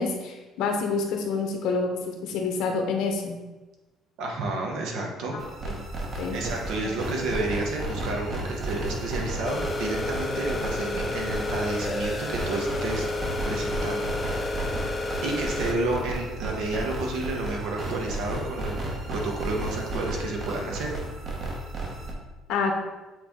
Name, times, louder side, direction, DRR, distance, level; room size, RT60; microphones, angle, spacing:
voice 1, 0.0-3.4 5.3-5.7 6.2-6.4 6.8-6.9 22.5-22.7, left 4 dB, 75° left, 3 dB, 1.0 m, -28 dB
voice 2, 4.2-5.4 6.3-13.1 13.4-14.0 15.2-18.8 19.1-20.9, right 2 dB, 75° right, 0 dB, 1.4 m, -30 dB
sound 1, 5.4-22.1, right 1 dB, 40° right, 1.1 m, -33 dB
sound 2, 9.4-15.7, left 2 dB, 25° left, 0.5 m, -31 dB
7.9 x 3.5 x 3.7 m, 1.1 s
cardioid pair, 130°, 0 cm